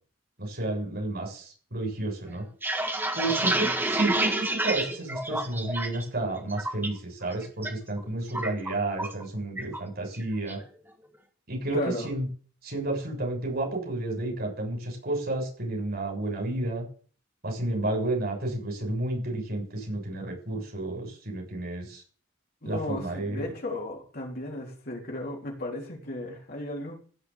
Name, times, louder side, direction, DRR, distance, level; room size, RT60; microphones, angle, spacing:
voice 1, 0.4-2.4 3.1-10.6 11.5-11.8 12.0-12.3 12.6-16.8 17.4-22.0 22.6-23.4, right 2 dB, 55° right, 1 dB, 6.6 m, -31 dB
sound 1, 2.4-6.0 6.4-6.9 7.3-7.7 8.0-9.2 9.6-9.8 10.1-10.6, right 1 dB, 10° right, 1.8 m, -29 dB
voice 2, 3.4-3.8 11.7-12.1 22.6-26.9, left 1 dB, 50° left, -1 dB, 3.8 m, -35 dB
16.0 x 6.2 x 7.1 m, 0.43 s
head